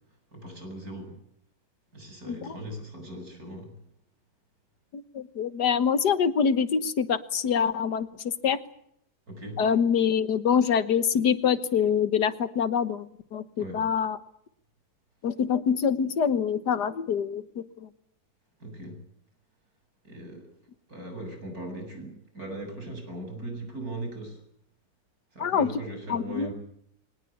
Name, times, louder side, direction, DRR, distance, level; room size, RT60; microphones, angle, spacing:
voice 1, 0.3-1.2 1.9-3.7 9.3-9.6 13.6-13.8 18.6-19.0 20.0-20.5 20.9-24.4 25.3-26.5, right 1 dB, 60° right, 5 dB, 8.5 m, -39 dB
voice 2, 4.9-8.1 8.4-8.6 9.6-14.2 15.2-17.9 25.4-25.7 26.1-26.5, left 7 dB, 75° left, 13 dB, 1.8 m, -25 dB
24.0 x 19.0 x 8.5 m, 0.71 s
omnidirectional pair, 1.8 m